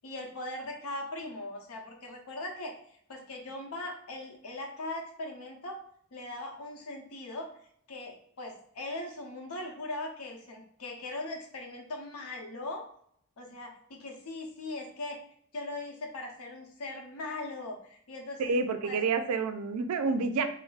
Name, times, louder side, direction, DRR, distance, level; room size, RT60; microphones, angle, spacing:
voice 1, 0.0-5.8 6.1-7.5 7.9-12.8 13.4-15.2 15.5-18.5 18.8-19.0, left 2 dB, 80° left, 1 dB, 0.7 m, -40 dB
voice 2, 18.4-20.4, right 4 dB, 85° right, 8 dB, 0.4 m, -28 dB
3.9 x 2.0 x 2.4 m, 0.65 s
head